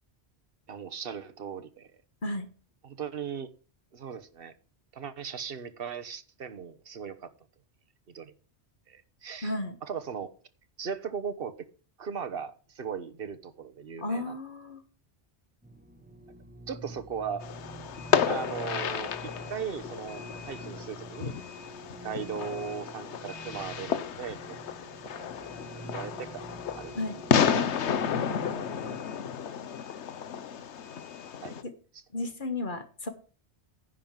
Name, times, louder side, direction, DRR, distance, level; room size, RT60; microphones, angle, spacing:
voice 1, 0.7-1.9 2.8-3.5 3.9-4.5 4.9-7.3 8.1-8.3 8.9-9.5 9.8-10.3 10.8-11.6 12.0-14.4 16.7-17.4 18.2-21.3 22.0-24.6 25.0-25.3 25.7-26.9 27.5-27.7 30.4-30.5 31.4-31.5 31.9-32.0, right 6 dB, 55° right, 11 dB, 1.2 m, -38 dB
voice 2, 9.4-9.8 14.0-14.8 26.9-27.2 31.6-31.7 32.1-33.1, left 2 dB, 45° left, 8 dB, 1.5 m, -33 dB
sound 1, 15.6-29.0, right 2 dB, 10° right, 1.3 m, -46 dB
Fireworks, 17.4-31.6, left 8 dB, 80° left, 1.1 m, -32 dB
10.5 x 5.4 x 7.3 m, 0.39 s
omnidirectional pair, 1.2 m